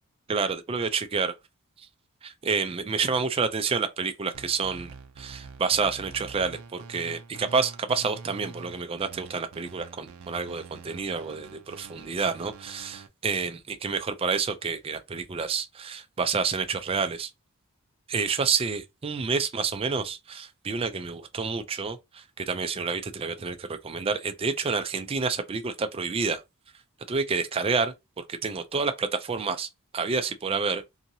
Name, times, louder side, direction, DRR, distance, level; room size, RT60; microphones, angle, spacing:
voice 1, 0.3-1.3 2.2-17.3 18.1-26.4 27.1-30.8, right 5 dB, 25° right, 0.4 m, -29 dB
sound 1, 4.3-13.1, right 4 dB, 80° right, 0.5 m, -46 dB
2.7 x 2.7 x 2.7 m
head